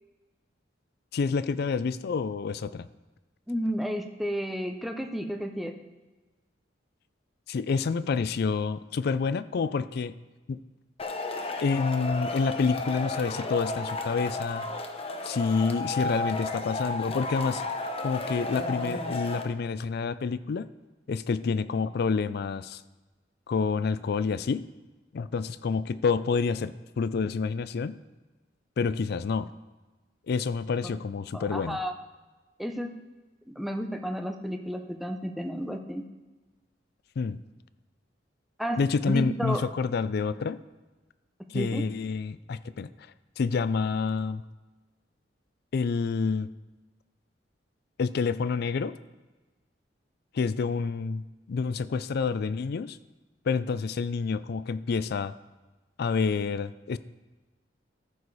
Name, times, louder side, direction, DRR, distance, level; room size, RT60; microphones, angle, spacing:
voice 1, 1.1-2.9 7.5-10.2 10.5-10.6 11.6-14.7 15.2-17.6 18.0-20.7 21.1-22.8 23.5-24.6 25.1-28.0 28.8-29.5 30.3-31.8 37.2-37.4 38.8-40.6 41.5-42.9 43.4-44.4 45.7-46.5 48.0-48.9 50.3-53.0 53.5-55.3 56.0-57.0, left 5 dB, 60° left, 14 dB, 0.4 m, -28 dB
voice 2, 3.5-5.7 30.8-31.0 31.3-31.9 32.6-32.9 33.5-36.0 38.6-38.8 39.1-39.6 41.5-41.8, equal, ahead, 4 dB, 0.6 m, -32 dB
Male speech man speaking / Shout / Clapping, 11.0-19.4, left 2 dB, 30° left, 0.7 m, -33 dB
14.0 x 4.8 x 4.1 m, 1.2 s
head